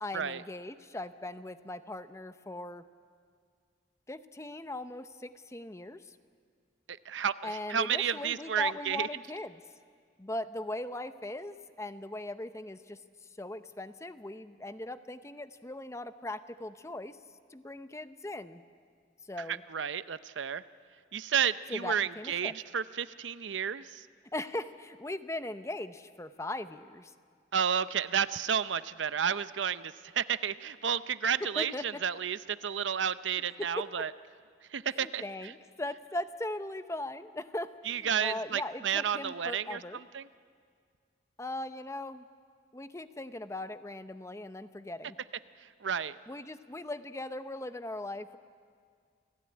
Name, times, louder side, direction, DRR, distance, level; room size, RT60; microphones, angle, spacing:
voice 1, 0.0-2.8 4.1-6.2 7.4-9.6 10.2-13.0 13.4-17.2 17.5-18.6 19.3-19.6 21.7-22.5 24.3-27.1 31.4-32.0 33.6-34.1 34.9-40.0 41.4-42.3 42.7-45.2 46.3-48.4, left 1 dB, 15° left, 11 dB, 0.7 m, -39 dB
voice 2, 6.9-9.1 19.5-20.6 21.1-24.1 27.5-34.1 34.7-35.5 37.9-40.3 45.8-46.2, right 8 dB, 80° right, 14 dB, 0.6 m, -31 dB
28.0 x 17.0 x 9.7 m, 2.1 s
head